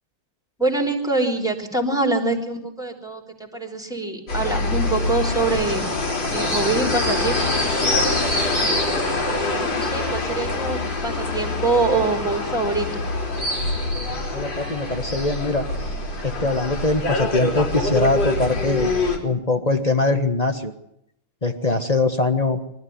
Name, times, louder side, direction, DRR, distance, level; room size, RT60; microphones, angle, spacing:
voice 1, 0.6-5.8 6.3-7.4 7.6-8.6 9.1-13.0, right 3 dB, ahead, 2 dB, 3.5 m, -25 dB
sound 1, 4.3-19.2, left 2 dB, 55° left, 4.7 m, -24 dB
voice 2, 14.3-15.7 16.2-18.9 19.2-20.7 21.4-22.6, left 3 dB, 20° left, 6 dB, 1.2 m, -22 dB
24.0 x 13.5 x 9.6 m, 0.78 s
omnidirectional pair, 2.3 m